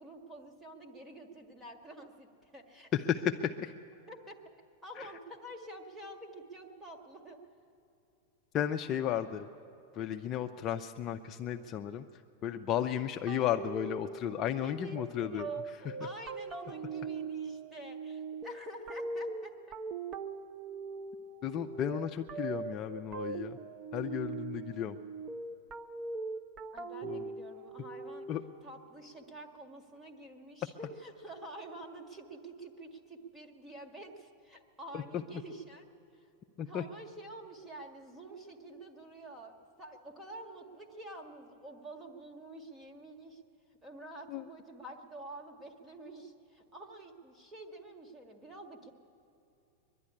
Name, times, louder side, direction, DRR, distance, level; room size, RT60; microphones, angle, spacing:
voice 1, 0.0-2.9 4.1-4.4 4.8-7.4 14.6-15.0 15.2-19.7 26.7-28.3 28.6-35.8 36.1-36.3 36.6-43.4 43.8-48.9, right 1 dB, 10° right, 3 dB, 1.7 m, -48 dB
voice 2, 2.9-3.7 5.0-5.1 8.5-9.5 9.9-12.0 12.4-16.0 21.4-23.6 23.9-25.0 27.0-27.3 28.3-28.4 34.9-35.2 36.6-36.8 44.3-44.4, left 9 dB, 30° left, 5 dB, 0.5 m, -34 dB
sound 1, 13.3-28.6, right 4 dB, 25° right, 0.7 m, -41 dB
22.5 x 11.5 x 9.9 m, 2.8 s
supercardioid pair, 150°, 0 cm